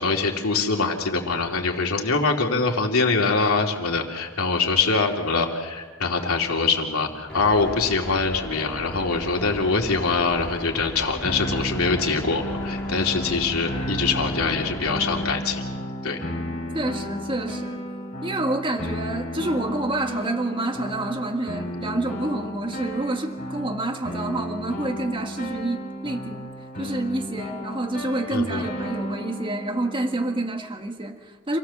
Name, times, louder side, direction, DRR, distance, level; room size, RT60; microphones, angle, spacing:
voice 1, 0.0-15.6 16.0-16.2 28.3-28.6, left 4 dB, 90° left, 3.1 m, -24 dB
sound 1, 7.3-15.3, equal, 5° left, 6.1 m, -37 dB
sound 2, 11.2-30.5, equal, 40° left, 4.1 m, -33 dB
voice 2, 16.7-17.8 18.2-26.5 26.8-31.6, right 2 dB, 25° right, 1.7 m, -28 dB
27.5 x 17.0 x 7.3 m
head